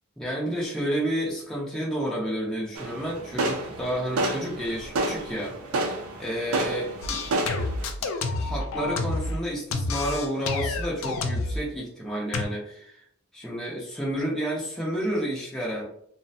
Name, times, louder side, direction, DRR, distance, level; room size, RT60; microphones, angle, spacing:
voice 1, 0.2-7.2 8.0-13.0 13.3-15.8, equal, 5° left, -6 dB, 0.5 m, -30 dB
sound 1, 2.7-7.9, right 2 dB, 85° right, 0.5 m, -30 dB
sound 2, 7.0-9.4 9.7-11.6 12.3-12.4, left 3 dB, 70° left, 0.4 m, -29 dB
2.4 x 2.1 x 2.7 m, 0.68 s
head